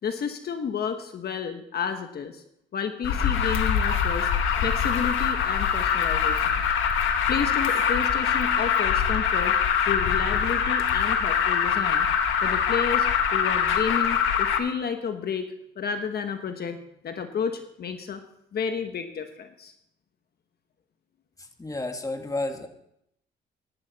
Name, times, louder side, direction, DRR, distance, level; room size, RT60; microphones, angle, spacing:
voice 1, 0.0-2.4 2.7-4.3 4.6-6.6 7.3-9.6 9.8-12.1 12.4-16.8 17.0-18.2 18.5-19.7, left 6 dB, 55° left, 7 dB, 1.2 m, -31 dB
Alarm, 3.0-14.6, left 7 dB, 85° left, 1.4 m, -23 dB
voice 2, 21.4-22.7, left 2 dB, 15° left, 6 dB, 1.6 m, -31 dB
16.0 x 10.5 x 4.1 m, 0.77 s
cardioid pair, 90°, 20 cm